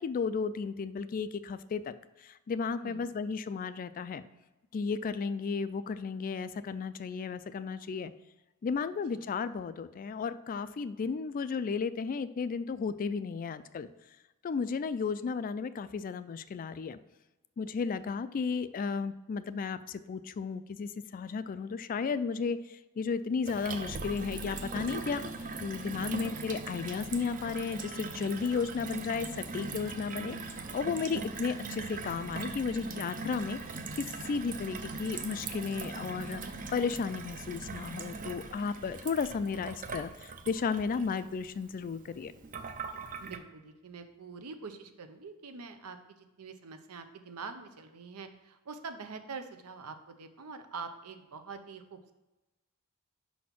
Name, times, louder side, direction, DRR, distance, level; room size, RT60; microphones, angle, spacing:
voice 1, 0.0-1.9 2.2-4.2 4.7-8.1 8.6-13.9 14.4-17.0 17.6-25.2 25.6-36.4 36.7-42.3, left 5 dB, 40° left, 13 dB, 0.3 m, -34 dB
voice 2, 2.8-3.1 9.1-9.2 26.1-26.3 43.2-52.1, right 4 dB, 85° right, 8 dB, 0.7 m, -45 dB
Gurgling / Water tap faucet / Sink (filling or washing), 23.5-43.4, right 4 dB, 35° right, 0.5 m, -40 dB
5.5 x 4.2 x 5.9 m, 1.1 s
head